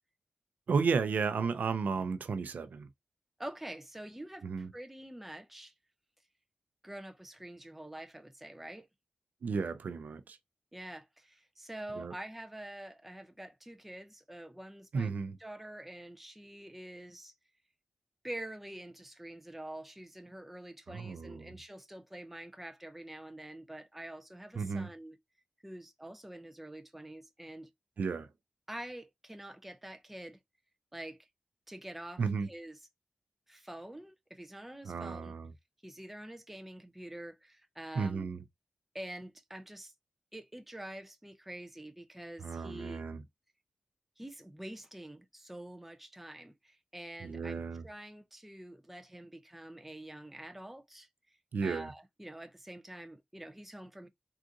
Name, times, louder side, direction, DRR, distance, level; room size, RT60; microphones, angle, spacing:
voice 1, 0.7-2.9 4.4-4.7 9.4-10.4 12.0-12.1 14.9-15.4 20.9-21.5 24.6-24.9 28.0-28.3 32.2-32.5 34.9-35.5 38.0-38.4 42.4-43.2 47.2-47.8 51.5-51.9, right 5 dB, 70° right, 0.4 m, -33 dB
voice 2, 3.4-5.7 6.8-8.9 10.7-15.1 15.4-17.3 18.2-25.2 25.6-27.7 28.7-30.4 30.9-31.3 31.7-32.8 33.5-35.3 35.8-38.3 38.9-39.9 40.3-43.0 44.2-54.1, right 1 dB, 5° right, 0.4 m, -46 dB
3.6 x 2.5 x 2.6 m
wide cardioid pair, 135°, 3 cm